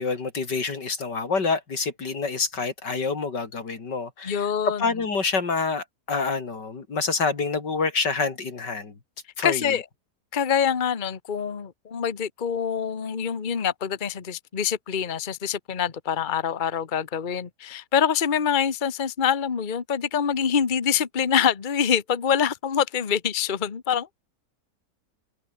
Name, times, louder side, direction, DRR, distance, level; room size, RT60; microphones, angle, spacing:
voice 1, 0.0-4.5 4.8-8.9 9.4-9.7, left 4 dB, 90° left, 3.9 m, -27 dB
voice 2, 4.2-4.9 9.4-9.8 10.3-24.1, left 8 dB, 30° left, 1.2 m, -25 dB
open air
omnidirectional pair, 1.8 m